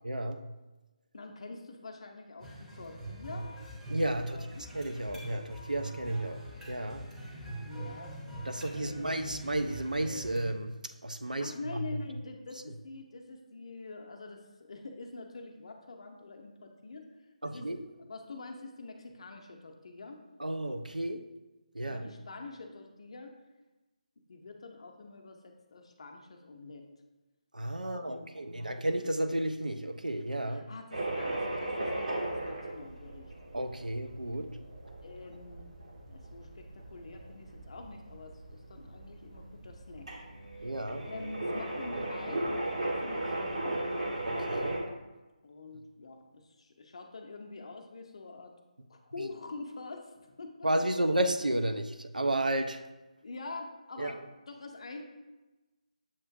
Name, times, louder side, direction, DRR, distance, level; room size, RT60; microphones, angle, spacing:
voice 1, 0.0-0.4 3.9-4.5 4.7-6.4 6.7-7.1 8.5-10.7 11.0-11.8 17.4-17.8 20.4-21.2 21.7-22.1 27.5-30.6 33.5-34.5 40.6-41.1 44.2-44.8 49.2-49.3 50.6-52.9 54.0-54.1, right 1 dB, 85° right, 8 dB, 0.4 m, -32 dB
voice 2, 1.1-3.5 4.2-4.6 7.6-8.1 8.7-9.3 11.3-17.1 17.4-17.7 18.0-20.3 21.8-23.3 24.3-26.9 27.8-28.6 30.4-33.3 35.0-35.7 36.1-40.2 41.0-43.8 45.4-48.5 48.9-50.1 50.4-50.7 53.2-54.2 54.5-55.0, left 3 dB, 50° left, 4 dB, 0.6 m, -45 dB
sound 1, 2.4-10.5, right 2 dB, 5° right, 0.6 m, -42 dB
sound 2, 30.9-44.8, right 1 dB, 65° right, 1.0 m, -37 dB
7.1 x 2.5 x 2.4 m, 1.1 s
figure-of-eight pair, 150°, 4 cm